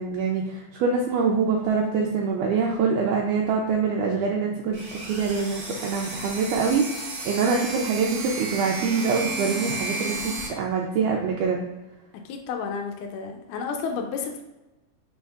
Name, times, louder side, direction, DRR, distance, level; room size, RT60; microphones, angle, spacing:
voice 1, 0.0-11.6, right 5 dB, 80° right, 0 dB, 1.9 m, -25 dB
sound 1, 4.7-10.5, right 2 dB, 65° right, 1.1 m, -33 dB
voice 2, 12.3-14.4, left 5 dB, 80° left, 3 dB, 2.0 m, -31 dB
5.2 x 4.3 x 2.4 m, 1.0 s
omnidirectional pair, 3.8 m